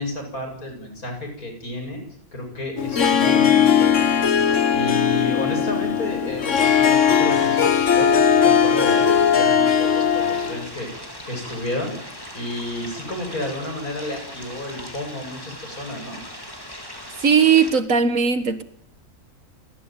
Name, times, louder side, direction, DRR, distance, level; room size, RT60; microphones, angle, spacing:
voice 1, 0.0-2.0 2.3-4.1 4.7-12.0 12.3-16.2, left 1 dB, 75° left, 8.5 m, -31 dB
Harp, 2.8-10.7, left 7 dB, 55° left, 1.6 m, -18 dB
sound 1, 6.5-17.7, left 1 dB, 15° left, 4.2 m, -39 dB
voice 2, 17.2-18.6, right 6 dB, 60° right, 2.0 m, -18 dB
29.0 x 14.5 x 9.2 m
omnidirectional pair, 1.5 m